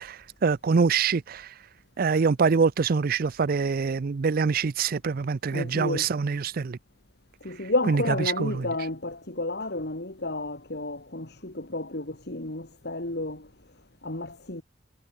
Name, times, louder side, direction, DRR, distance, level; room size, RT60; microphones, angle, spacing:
voice 1, 0.0-1.6 2.0-6.8 7.5-8.0 8.4-8.7, right 5 dB, 50° right, 0.5 m, -25 dB
voice 2, 5.5-6.1 7.4-13.5 14.0-14.6, left 2 dB, 60° left, 2.9 m, -31 dB
head